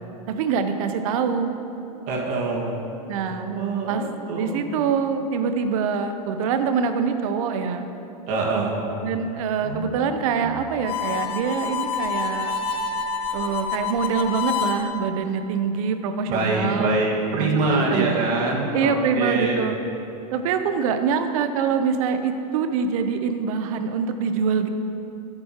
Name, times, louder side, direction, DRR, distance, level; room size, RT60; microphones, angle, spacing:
voice 1, 0.3-1.5 3.0-3.5 3.9-7.9 9.0-12.5 13.3-17.1 17.3-18.2 18.7-19.7 20.3-24.7, right 6 dB, 60° right, 8 dB, 0.7 m, -25 dB
voice 2, 2.1-2.8 3.3-4.6 8.3-8.8 9.6-9.9 10.4-10.5 16.3-19.7, right 3 dB, 45° right, -2 dB, 1.8 m, -25 dB
Harmonica, 10.8-14.9, left 6 dB, 30° left, 0.8 m, -27 dB
13.0 x 7.5 x 3.0 m, 2.9 s
hypercardioid pair, 125°, 20 cm